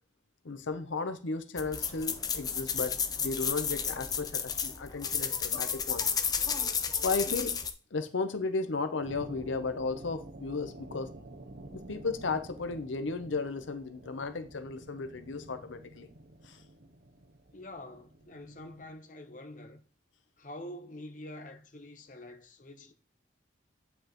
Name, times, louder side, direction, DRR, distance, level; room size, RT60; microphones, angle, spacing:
voice 1, 0.4-6.1 6.9-7.5 7.9-11.1 11.7-16.1 16.4-16.6, left 4 dB, 85° left, 0.8 m, -34 dB
sound 1, 1.6-7.7, left 7 dB, 20° left, 0.5 m, -32 dB
sound 2, 9.0-18.9, right 2 dB, 55° right, 0.7 m, -50 dB
voice 2, 17.5-19.8 20.4-22.9, left 1 dB, 40° left, 0.9 m, -46 dB
8.9 x 5.5 x 3.0 m
head